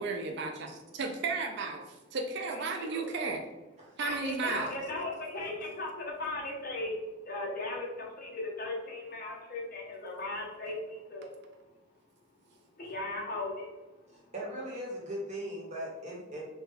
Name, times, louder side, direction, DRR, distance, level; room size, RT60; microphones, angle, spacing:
voice 1, 0.0-1.8 2.1-3.4 4.0-4.7, right 4 dB, 55° right, 4 dB, 0.4 m, -34 dB
voice 2, 2.5-3.1 4.0-7.0 7.2-11.3 12.8-13.8, left 2 dB, 45° left, -2 dB, 1.0 m, -37 dB
voice 3, 14.1-16.5, equal, 35° right, -4 dB, 1.2 m, -39 dB
4.0 x 2.3 x 4.0 m, 1.1 s
head